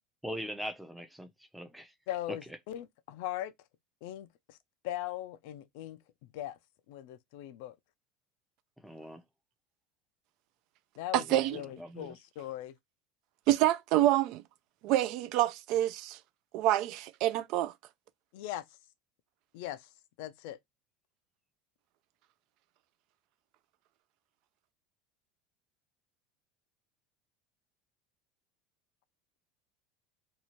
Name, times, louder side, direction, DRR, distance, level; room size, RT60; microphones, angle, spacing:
voice 1, 0.2-1.9 2.5-2.6 8.8-9.2 11.1-12.2, equal, ahead, 0.5 m, -42 dB
voice 2, 2.1-3.5 4.0-4.6 4.8-6.0 6.3-6.6 6.9-7.8 11.0-12.7 18.3-18.7 19.5-19.9 20.2-20.6, left 13 dB, 75° left, 0.4 m, -40 dB
voice 3, 11.1-11.6 13.5-14.4 14.8-16.2 16.5-17.7, right 14 dB, 60° right, 0.3 m, -27 dB
2.7 x 2.4 x 2.9 m
supercardioid pair, 135°, 0 cm